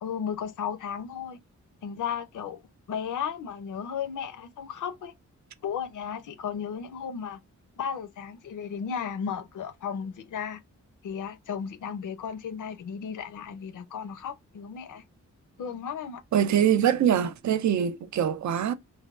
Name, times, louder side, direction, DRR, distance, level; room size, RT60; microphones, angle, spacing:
voice 1, 0.0-1.4 1.8-2.6 2.9-5.1 5.6-7.4 7.8-10.6 11.0-15.0 15.6-16.2, left 7 dB, 75° left, 0.6 m, -34 dB
voice 2, 16.3-18.7, right 9 dB, 65° right, 0.4 m, -23 dB
3.3 x 2.2 x 2.3 m
wide cardioid pair, 175°, 31 cm